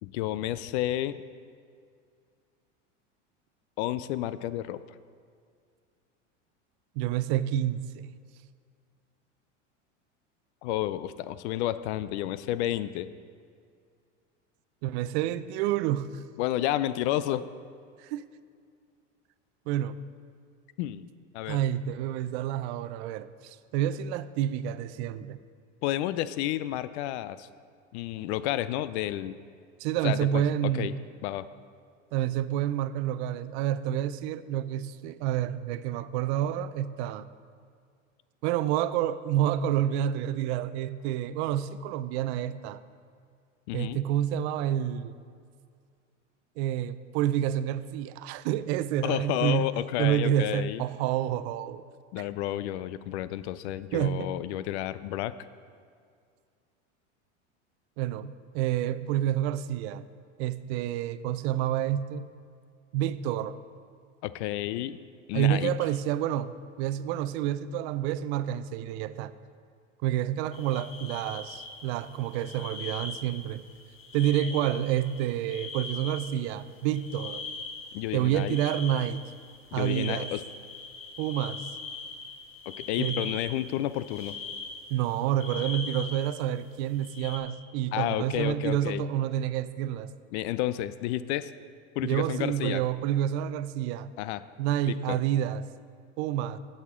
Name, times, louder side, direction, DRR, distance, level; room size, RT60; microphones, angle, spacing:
voice 1, 0.0-1.2 3.8-4.8 10.6-13.1 16.4-17.5 20.8-21.1 21.3-21.6 25.8-27.5 27.9-29.4 30.0-30.9 31.2-31.5 43.7-44.0 49.0-50.8 52.1-55.4 64.2-65.0 65.3-65.7 77.9-78.6 79.7-80.4 82.7-84.4 87.9-89.0 90.3-91.5 92.0-92.8 94.2-94.4 94.9-95.2, left 13 dB, 65° left, 15 dB, 0.5 m, -31 dB
voice 2, 7.0-8.1 14.8-16.2 18.0-18.2 19.7-20.0 21.5-25.4 29.8-30.9 32.1-37.2 38.4-42.8 43.7-45.2 46.6-49.7 50.0-51.8 53.9-54.3 58.0-60.0 60.4-62.3 62.9-63.6 65.3-69.3 70.0-73.6 74.1-77.4 78.1-79.2 79.7-80.3 81.2-81.7 83.0-83.2 84.9-90.1 92.0-94.1 94.6-95.7 96.2-96.6, right 11 dB, 60° right, 14 dB, 0.5 m, -29 dB
sound 1, 70.5-85.0 85.3-86.3 86.9-87.4, left 4 dB, 35° left, 1.5 m, -41 dB
16.0 x 6.5 x 3.7 m, 2.2 s
hypercardioid pair, 100°, 37 cm